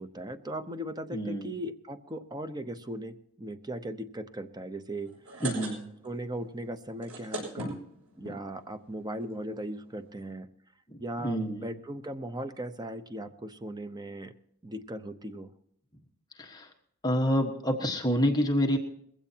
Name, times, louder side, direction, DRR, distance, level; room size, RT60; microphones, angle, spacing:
voice 1, 0.0-5.4 6.0-7.8 8.2-10.5 11.0-14.3 14.6-15.5, right 1 dB, 20° right, 9 dB, 0.8 m, -38 dB
voice 2, 1.1-1.5 5.4-5.8 10.9-11.7 16.4-16.7 17.0-18.8, equal, 20° left, 2 dB, 1.4 m, -28 dB
sound 1, 5.1-6.2 6.4-6.6 6.9-8.4 9.1-9.2 9.4-9.5 9.7-9.9, right 2 dB, 90° right, 6.8 m, -37 dB
21.0 x 16.0 x 2.9 m, 0.70 s
head